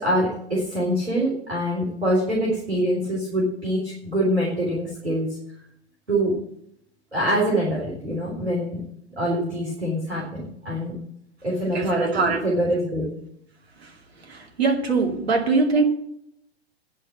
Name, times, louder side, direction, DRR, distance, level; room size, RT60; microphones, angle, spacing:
voice 1, 0.0-5.4 6.1-6.3 7.1-8.8 9.1-10.9 11.4-13.1, equal, 85° right, -4 dB, 3.8 m, -24 dB
voice 2, 11.7-12.4 14.3-15.8, right 4 dB, 70° right, 2 dB, 2.5 m, -22 dB
10.0 x 6.6 x 8.8 m, 0.72 s
figure-of-eight pair, 100°, 32 cm